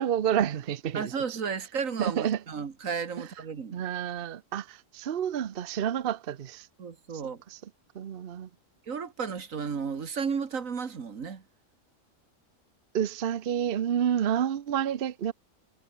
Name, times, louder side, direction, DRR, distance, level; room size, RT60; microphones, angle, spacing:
voice 1, 0.0-1.1 2.0-2.4 3.7-6.7 7.5-7.6 7.9-8.5 12.9-15.3, right 9 dB, 50° right, 0.9 m, -29 dB
voice 2, 0.9-3.8 6.8-7.4 8.9-11.4, right 6 dB, 90° right, 2.1 m, -33 dB
omnidirectional pair, 1.3 m